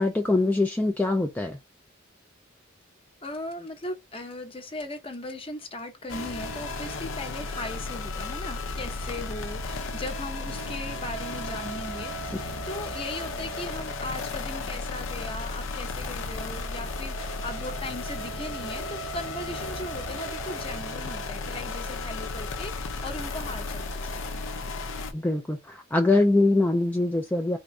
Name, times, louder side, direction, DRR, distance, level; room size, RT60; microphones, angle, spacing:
voice 1, 0.0-1.6 25.1-27.6, left 2 dB, 10° left, 0.3 m, -23 dB
voice 2, 3.2-24.4, left 2 dB, 30° left, 0.8 m, -38 dB
sound 1, 6.1-25.1, left 2 dB, 70° left, 0.7 m, -34 dB
3.6 x 2.6 x 3.2 m
head